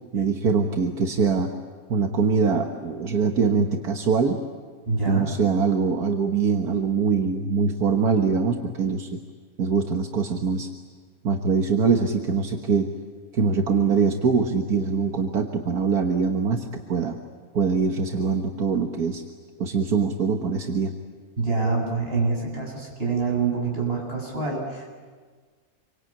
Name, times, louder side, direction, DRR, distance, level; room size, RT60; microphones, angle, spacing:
voice 1, 0.1-1.5 1.9-4.4 5.1-9.2 9.6-10.7 11.2-12.9 13.3-17.2 17.5-19.2 19.6-20.9, right 5 dB, 75° right, 3 dB, 1.9 m, -23 dB
voice 2, 4.9-5.3 21.4-24.9, right 4 dB, 40° right, -1 dB, 7.9 m, -26 dB
27.5 x 24.0 x 8.8 m, 1.5 s
omnidirectional pair, 1.6 m